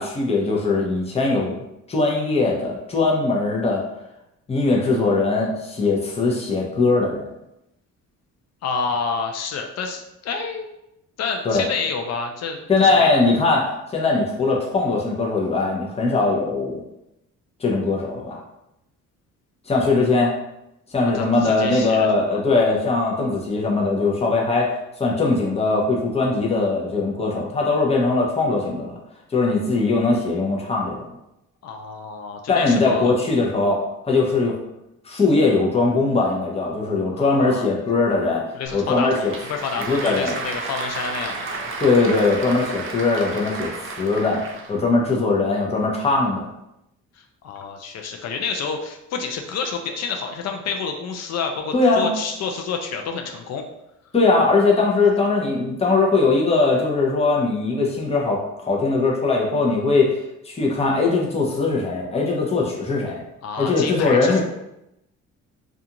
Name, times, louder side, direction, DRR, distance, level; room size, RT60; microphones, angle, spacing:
voice 1, 0.0-3.8 4.5-7.3 11.4-11.6 12.7-16.8 17.6-18.4 19.7-20.3 20.9-24.7 25.0-29.0 29.3-31.0 32.5-33.8 34.0-34.6 35.0-38.4 38.7-39.3 39.8-40.3 41.8-44.4 44.7-46.5 51.7-52.1 54.1-60.2 60.4-63.2 63.6-64.4, left 3 dB, 20° left, -2 dB, 0.6 m, -20 dB
voice 2, 8.6-10.7 11.2-13.1 21.1-22.4 31.6-33.1 37.1-37.7 38.5-41.7 47.4-53.6 63.4-64.4, left 5 dB, 60° left, 3 dB, 0.4 m, -29 dB
Applause / Crowd, 38.6-44.8, right 3 dB, 45° right, 0.6 m, -32 dB
2.4 x 2.4 x 2.8 m, 0.86 s
cardioid pair, 90°, 30 cm